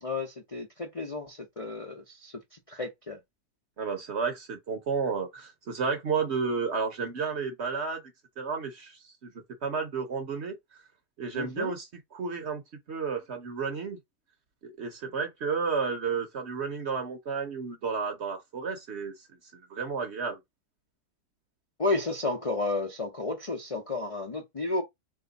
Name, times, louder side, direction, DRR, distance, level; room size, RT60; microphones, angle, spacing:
voice 1, 0.0-3.2 11.3-11.7 21.8-24.8, left 2 dB, 50° left, 0.4 m, -32 dB
voice 2, 3.8-8.0 8.4-9.3 9.6-10.6 11.2-12.6 12.9-14.0 14.6-19.1 19.7-20.4, right 5 dB, 50° right, 0.9 m, -32 dB
3.4 x 2.8 x 4.0 m
omnidirectional pair, 1.8 m